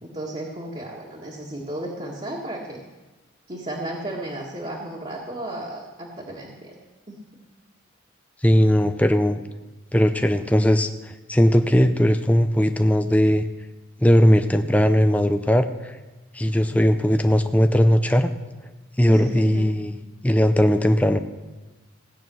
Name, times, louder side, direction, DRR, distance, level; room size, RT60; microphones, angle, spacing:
voice 1, 0.0-2.8 3.5-6.7 7.1-7.2 19.1-19.7, right 1 dB, 30° right, -4 dB, 1.8 m, -33 dB
voice 2, 8.4-9.4 9.9-13.4 14.0-16.0 16.3-18.3 19.0-19.9 20.2-21.2, equal, 5° left, 8 dB, 0.5 m, -18 dB
17.0 x 9.0 x 6.2 m, 1.1 s
head